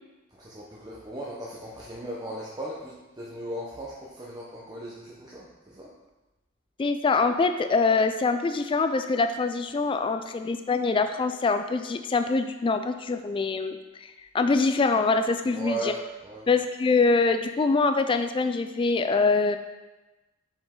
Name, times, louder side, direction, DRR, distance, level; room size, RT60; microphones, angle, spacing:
voice 1, 0.3-5.9 15.5-16.5, right 1 dB, 20° right, -6 dB, 0.8 m, -37 dB
voice 2, 6.8-15.8 16.5-19.6, left 4 dB, 25° left, 8 dB, 0.3 m, -24 dB
7.2 x 5.1 x 3.7 m, 1.1 s
head